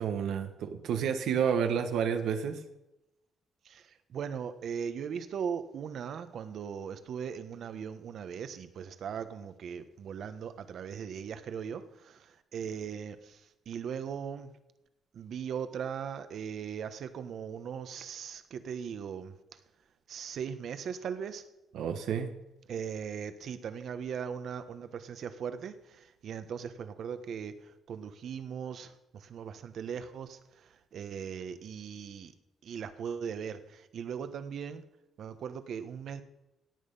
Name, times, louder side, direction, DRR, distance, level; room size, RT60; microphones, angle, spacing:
voice 1, 0.0-2.6 21.7-22.3, right 7 dB, 80° right, 6 dB, 1.3 m, -30 dB
voice 2, 3.6-14.5 15.1-19.3 20.1-21.4 22.7-32.3 32.6-34.8 35.2-36.2, right 7 dB, 60° right, 10 dB, 1.2 m, -39 dB
17.0 x 8.8 x 5.5 m, 0.94 s
cardioid pair, 120°, 0 cm